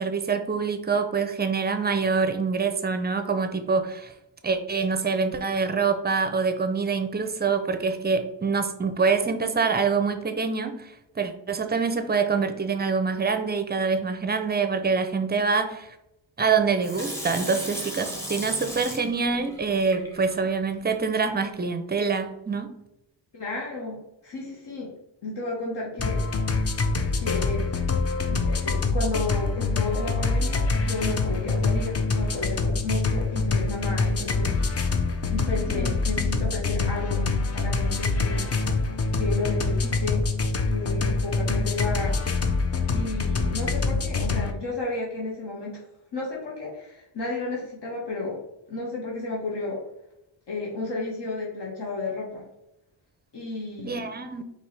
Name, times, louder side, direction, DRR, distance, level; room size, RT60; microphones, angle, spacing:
voice 1, 0.0-4.1 4.4-15.9 16.4-22.8 35.6-35.9 53.8-54.4, right 5 dB, 20° right, 8 dB, 0.5 m, -25 dB
Water tap faucet / Sink (filling or washing), 16.8-20.6 21.1-21.2, equal, 5° left, 1.2 m, -37 dB
voice 2, 23.3-24.9 25.2-26.2 27.2-27.7 28.3-34.5 35.3-37.2 37.5-38.5 39.1-40.2 40.6-42.1 42.9-45.8 46.1-48.4 48.7-49.8 50.5-52.5 53.3-54.1, left 2 dB, 60° left, -4 dB, 1.3 m, -32 dB
sound 1, 26.0-44.5, left 3 dB, 35° left, 0.6 m, -25 dB
4.5 x 3.0 x 3.2 m, 0.87 s
cardioid pair, 80°, 46 cm